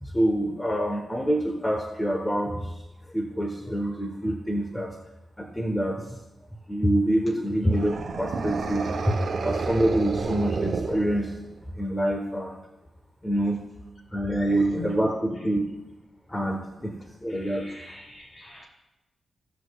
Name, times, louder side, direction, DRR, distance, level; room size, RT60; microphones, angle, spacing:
voice 1, 0.0-2.7 3.1-4.9 5.4-6.0 6.7-9.2 9.4-11.3 11.8-12.6 13.2-13.6 14.1-15.7 16.3-16.9 17.2-17.6, right 1 dB, 15° left, 1 dB, 1.2 m, -26 dB
sound 1, 7.7-11.6, right 4 dB, 65° right, 1.0 m, -30 dB
voice 2, 14.2-14.7 15.3-15.5 16.9-18.7, left 1 dB, 45° left, -3 dB, 3.3 m, -46 dB
16.0 x 6.3 x 2.4 m, 0.96 s
supercardioid pair, 50°, 0 cm